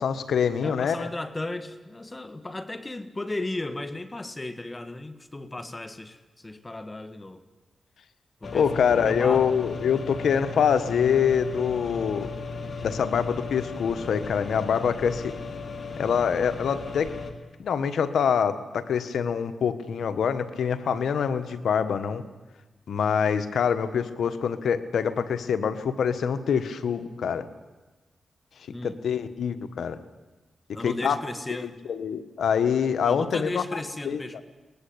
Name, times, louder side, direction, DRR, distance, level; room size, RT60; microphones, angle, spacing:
voice 1, 0.0-1.1 8.5-12.3 12.8-15.3 16.0-17.1 17.6-22.2 22.9-27.5 28.8-30.0 30.8-31.2 31.6-33.8 34.0-34.4, left 7 dB, 85° left, 10 dB, 1.5 m, -25 dB
voice 2, 0.6-7.4 8.4-9.5 28.7-29.0 30.7-31.8 33.0-34.4, left 2 dB, 25° left, 11 dB, 1.7 m, -35 dB
sound 1, 8.4-17.3, left 4 dB, 60° left, 2.8 m, -36 dB
23.0 x 19.5 x 8.8 m, 1.2 s
cardioid pair, 60°, 0 cm